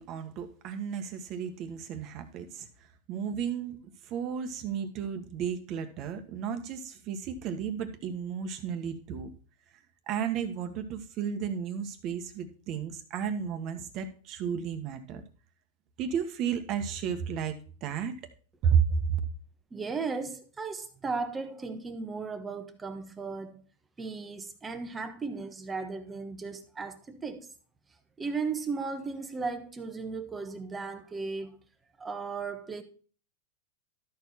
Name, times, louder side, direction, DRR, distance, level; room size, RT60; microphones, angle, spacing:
voice 1, 0.0-2.7 3.1-3.8 4.0-9.3 10.1-15.2 16.0-18.1 18.6-19.2, right 7 dB, 40° right, 1.3 m, -32 dB
voice 2, 19.7-23.6 24.0-27.5 28.2-31.6 32.0-32.8, right 4 dB, 15° right, 1.1 m, -36 dB
13.0 x 4.7 x 4.1 m
supercardioid pair, 135°, 0 cm